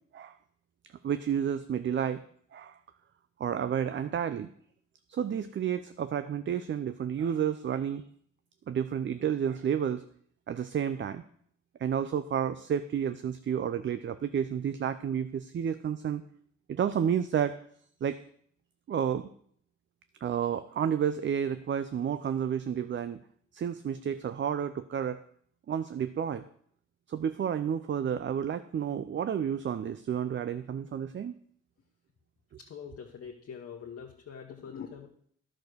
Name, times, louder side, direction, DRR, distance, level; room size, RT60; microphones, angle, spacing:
voice 1, 1.0-2.2 2.5-2.8 3.4-4.5 5.1-8.0 8.7-10.0 10.5-11.2 11.8-16.2 16.7-17.6 18.0-18.2 18.9-19.3 20.2-23.2 23.5-25.2 25.7-26.4 27.1-31.3, right 8 dB, 40° right, 11 dB, 0.5 m, -31 dB
voice 2, 32.6-35.1, left 7 dB, 50° left, 1 dB, 1.3 m, -44 dB
10.5 x 6.4 x 6.6 m, 0.62 s
cardioid pair, 90°, 30 cm